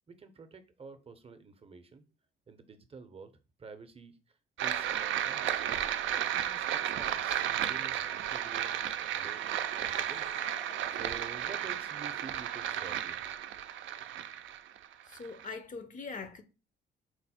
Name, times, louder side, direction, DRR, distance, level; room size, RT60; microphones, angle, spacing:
voice 1, 0.1-2.0 2.5-3.3 3.6-4.2 4.6-5.8 6.3-8.7 9.1-10.3 10.9-13.3, right 4 dB, 30° right, 0.6 m, -49 dB
sound 1, 4.6-15.5, right 10 dB, 75° right, 0.4 m, -33 dB
sound 2, 8.9-12.4, left 6 dB, 85° left, 0.8 m, -55 dB
voice 2, 15.1-16.4, left 4 dB, 40° left, 0.5 m, -42 dB
4.5 x 2.0 x 4.2 m
cardioid pair, 90°, 20 cm